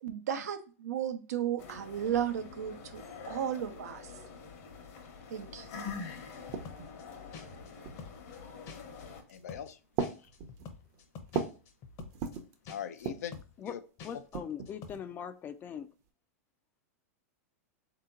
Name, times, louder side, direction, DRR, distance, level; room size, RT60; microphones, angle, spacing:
voice 1, 0.0-4.1 5.3-5.7, right 9 dB, 80° right, 8 dB, 0.7 m, -34 dB
sound 1, 1.6-9.2, left 5 dB, 60° left, 1.0 m, -46 dB
sound 2, 5.5-5.6 5.8-7.0 7.8-8.3 9.1-9.5 9.9-11.7 12.0-12.5 12.9-13.4 14.1-15.1, right 6 dB, 45° right, 0.7 m, -38 dB
sound 3, 6.3-7.0 7.3-7.7 8.0-8.4 8.7-9.0 9.3-9.7 10.0-12.4 12.7-13.0 13.3-13.7 14.0-14.4 14.7-14.9, left 5 dB, 40° left, 0.8 m, -48 dB
voice 2, 9.3-9.8 10.2-10.3 12.7-13.8, left 9 dB, 80° left, 10 dB, 0.5 m, -42 dB
voice 3, 14.0-15.9, left 8 dB, 25° left, 11 dB, 0.4 m, -41 dB
3.7 x 2.8 x 3.7 m, 0.35 s
hypercardioid pair, 125°, 8 cm